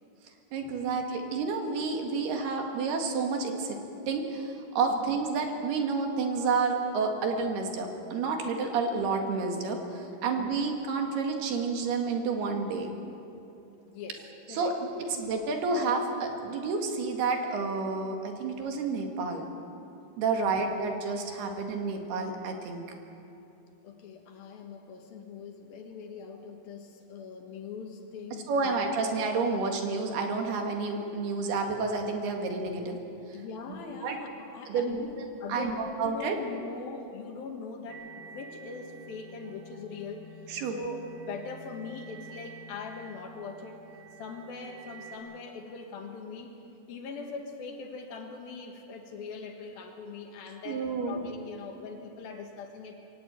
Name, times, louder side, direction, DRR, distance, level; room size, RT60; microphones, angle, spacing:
voice 1, 0.5-3.8 4.1-12.9 14.5-19.5 20.2-22.8 28.5-33.0 33.7-34.2 34.7-35.2 35.5-36.4 40.5-40.8 50.7-51.2, right 4 dB, 75° right, 3 dB, 4.0 m, -30 dB
voice 2, 10.2-10.5 13.9-15.2 20.4-20.6 23.8-28.9 33.3-35.2 35.4-43.8 44.2-46.5 46.9-52.9, left 4 dB, 65° left, 4 dB, 3.4 m, -42 dB
sound 1, 37.9-45.2, right 2 dB, 60° right, 4.1 m, -49 dB
22.0 x 17.5 x 9.1 m, 2.7 s
omnidirectional pair, 4.7 m